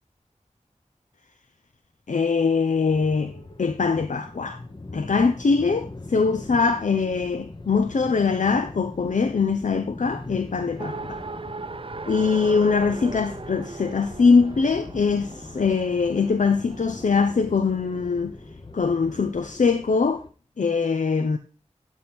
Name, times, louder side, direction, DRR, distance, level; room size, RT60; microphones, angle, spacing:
voice 1, 2.1-3.3 3.6-4.6 4.9-11.2 12.1-18.4 18.7-20.2 20.6-21.4, left 5 dB, 85° left, 0.6 m, -22 dB
sound 1, 2.8-20.3, left 2 dB, 40° left, 0.9 m, -41 dB
Race car auto racing, 10.8-17.1, right 3 dB, 45° right, 0.5 m, -38 dB
11.5 x 4.5 x 3.5 m
wide cardioid pair, 45°, 13 cm